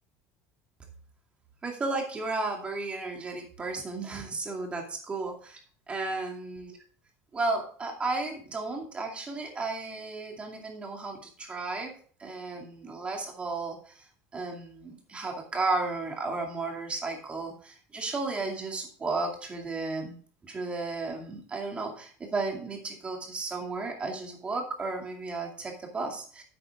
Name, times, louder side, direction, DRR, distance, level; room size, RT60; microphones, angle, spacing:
voice 1, 1.6-5.6 5.9-6.8 7.3-14.1 14.3-20.2 20.4-26.4, right 3 dB, 20° right, 1 dB, 2.4 m, -34 dB
9.9 x 8.5 x 3.5 m, 0.43 s
cardioid pair, 160°, 6 cm